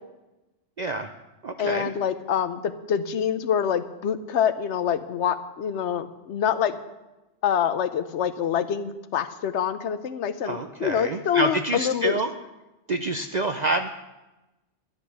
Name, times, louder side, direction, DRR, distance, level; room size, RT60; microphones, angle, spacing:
voice 1, 0.8-1.1 1.4-1.9 10.4-12.3 12.9-13.9, right 2 dB, 50° right, 7 dB, 0.6 m, -27 dB
voice 2, 1.6-6.8 7.4-12.2, left 8 dB, 70° left, 13 dB, 1.0 m, -26 dB
11.5 x 10.0 x 6.1 m, 1.0 s
omnidirectional pair, 1.2 m